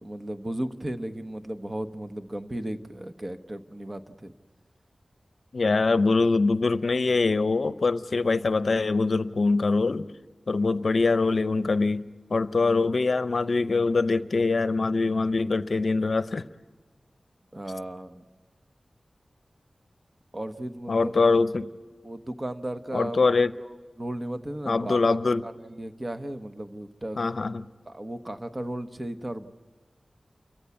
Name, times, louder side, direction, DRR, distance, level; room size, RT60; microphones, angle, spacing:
voice 1, 0.0-4.3 17.5-18.2 20.3-21.1 22.0-23.3 24.0-25.2 25.4-27.2 27.9-29.5, right 1 dB, 35° right, 8 dB, 1.1 m, -35 dB
voice 2, 5.5-10.1 10.5-16.5 20.9-21.7 22.9-23.5 24.7-25.4 27.2-27.7, left 3 dB, 70° left, 14 dB, 0.6 m, -23 dB
29.0 x 14.5 x 8.4 m, 1.4 s
wide cardioid pair, 50°, 0 cm